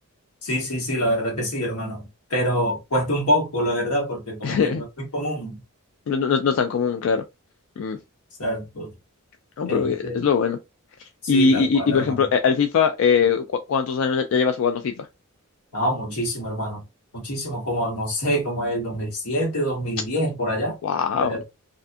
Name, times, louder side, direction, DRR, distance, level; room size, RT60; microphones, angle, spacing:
voice 1, 0.4-4.9 5.1-5.6 8.4-8.9 9.7-10.2 11.2-12.3 15.7-16.8 17.1-20.8 21.2-21.4, equal, 85° left, 1.3 m, -26 dB
voice 2, 4.4-4.8 6.1-7.2 7.8-8.0 9.6-10.6 11.3-15.1 20.8-21.4, left 5 dB, 65° left, 0.3 m, -21 dB
2.5 x 2.5 x 2.3 m
head